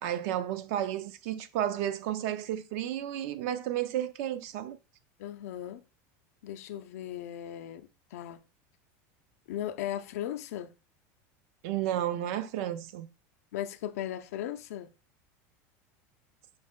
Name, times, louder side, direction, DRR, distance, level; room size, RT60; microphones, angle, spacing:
voice 1, 0.0-4.8 11.6-13.1, right 11 dB, 70° right, 0.4 m, -32 dB
voice 2, 5.2-5.8 6.4-8.4 9.5-10.7 13.5-14.9, left 11 dB, 85° left, 0.4 m, -37 dB
5.3 x 2.1 x 3.6 m
supercardioid pair, 130°, 8 cm